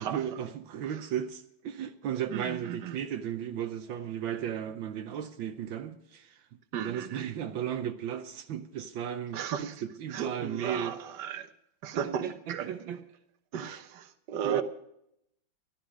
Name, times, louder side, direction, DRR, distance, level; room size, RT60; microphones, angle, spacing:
voice 1, 0.0-6.5 6.8-10.9 11.9-13.0 13.7-13.8 14.4-14.6, right 9 dB, 80° right, 1.6 m, -35 dB
voice 2, 2.3-3.0 6.7-7.3 9.3-9.7 10.1-11.5 11.8-12.7 13.5-14.6, right 8 dB, 65° right, 1.6 m, -35 dB
14.5 x 12.0 x 6.2 m
omnidirectional pair, 2.1 m